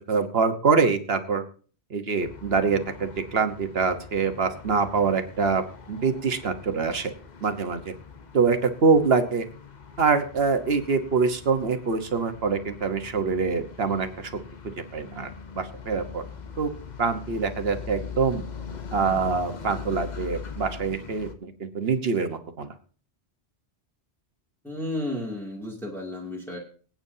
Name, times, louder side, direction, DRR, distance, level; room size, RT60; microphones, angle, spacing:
voice 1, 0.1-1.4 1.9-5.6 5.9-7.1 7.4-7.9 8.3-9.4 10.0-14.3 14.9-15.3 15.6-16.2 16.6-16.7 17.0-18.4 18.9-22.7, right 5 dB, 65° right, 8 dB, 1.3 m, -24 dB
sound 1, 2.2-21.3, left 6 dB, 45° left, 1.1 m, -42 dB
voice 2, 24.6-26.6, left 1 dB, ahead, -3 dB, 2.4 m, -32 dB
24.5 x 8.8 x 2.7 m, 0.40 s
omnidirectional pair, 1.1 m